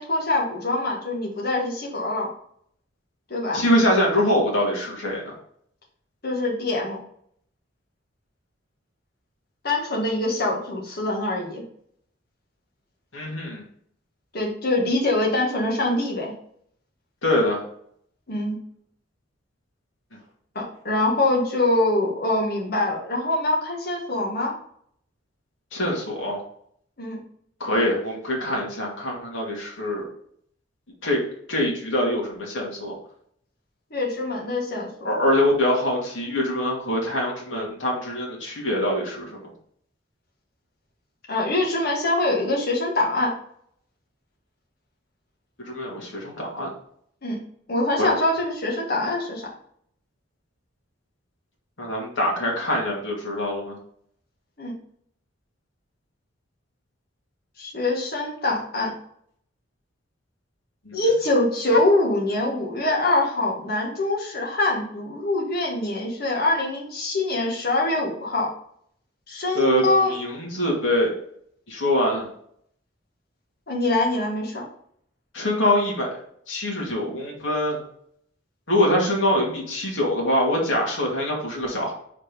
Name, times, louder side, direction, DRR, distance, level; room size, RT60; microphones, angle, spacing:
voice 1, 0.0-2.3 3.3-3.7 6.2-7.0 9.6-11.6 14.3-16.3 18.3-18.6 20.6-24.5 27.0-27.2 33.9-34.9 41.3-43.3 47.2-47.4 47.7-49.5 54.6-54.7 57.6-59.0 60.9-68.5 69.3-70.2 73.7-74.7, left 2 dB, 55° left, -2 dB, 1.8 m, -24 dB
voice 2, 3.5-5.3 13.1-13.6 17.2-17.6 25.7-26.4 27.6-30.0 31.0-31.2 31.5-33.0 35.0-39.5 45.7-46.7 48.0-48.1 51.8-53.8 60.8-61.0 69.5-71.1 71.7-72.3 75.3-76.1 76.5-77.8 78.7-81.9, left 1 dB, 80° left, -2 dB, 2.3 m, -24 dB
5.1 x 4.2 x 5.3 m, 0.65 s
head